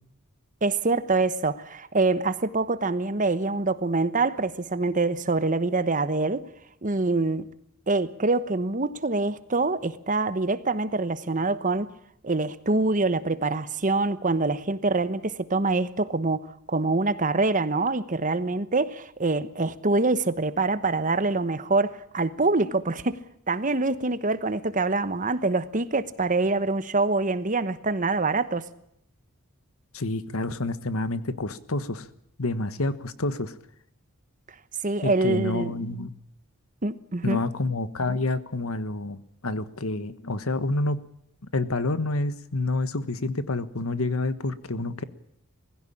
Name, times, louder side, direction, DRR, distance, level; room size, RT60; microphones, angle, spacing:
voice 1, 0.6-6.5 6.8-7.5 7.9-11.9 12.2-23.2 23.5-28.7 34.8-35.8 36.8-37.4, right 3 dB, 40° right, 1.1 m, -25 dB
voice 2, 29.9-32.1 32.4-33.6 35.0-36.1 37.2-41.0 41.5-45.0, left 2 dB, 80° left, 1.4 m, -28 dB
20.5 x 16.0 x 10.0 m
head